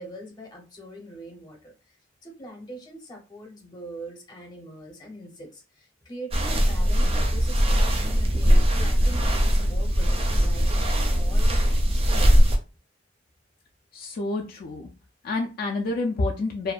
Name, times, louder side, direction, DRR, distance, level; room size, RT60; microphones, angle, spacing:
voice 1, 0.0-1.7 2.2-12.3, right 1 dB, 20° left, 0 dB, 0.7 m, -42 dB
sound 1, 6.3-12.6, equal, 30° right, 0.4 m, -20 dB
voice 2, 13.9-14.9 15.2-16.7, left 2 dB, 50° left, 0 dB, 0.3 m, -28 dB
2.6 x 2.1 x 2.3 m, 0.31 s
head